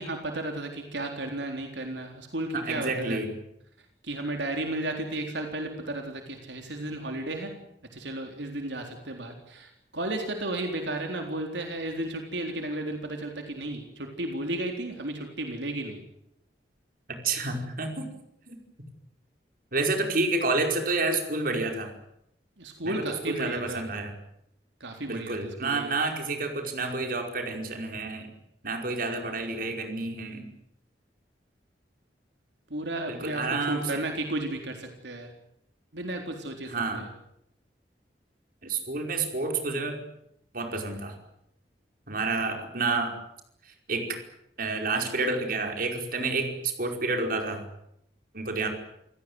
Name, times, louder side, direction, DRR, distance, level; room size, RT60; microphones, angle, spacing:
voice 1, 0.0-3.2 4.0-7.5 7.9-16.0 22.6-23.8 24.8-25.9 32.7-35.3 35.9-37.1, right 1 dB, 80° right, 4 dB, 3.9 m, -33 dB
voice 2, 2.5-3.3 17.1-18.1 18.5-18.6 19.7-21.9 22.8-24.1 25.1-28.3 28.6-30.5 33.1-34.0 36.6-37.1 38.6-40.0 40.5-41.2 42.1-43.2 43.9-44.2 44.6-47.6 48.3-48.7, right 3 dB, 55° right, 4 dB, 5.0 m, -29 dB
28.5 x 17.5 x 9.6 m, 0.78 s
head